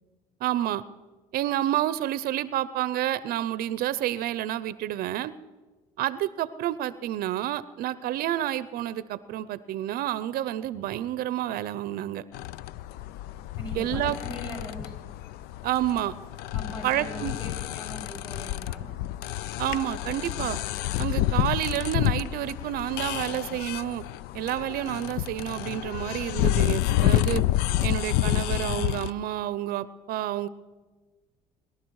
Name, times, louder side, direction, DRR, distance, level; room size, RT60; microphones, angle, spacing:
voice 1, 0.4-0.8 1.3-5.3 6.0-12.2 13.7-14.2 15.6-16.1 16.8-17.3 19.6-20.6 21.0-24.0 24.3-27.4 27.8-30.5, right 13 dB, 70° right, 17 dB, 0.6 m, -29 dB
sound 1, 12.3-29.1, left 14 dB, 85° left, 0.4 m, -29 dB
voice 2, 13.6-14.9 16.5-18.9, left 1 dB, 25° left, 2 dB, 6.6 m, -40 dB
22.5 x 12.0 x 4.7 m, 1.3 s
cardioid pair, 100°, 16 cm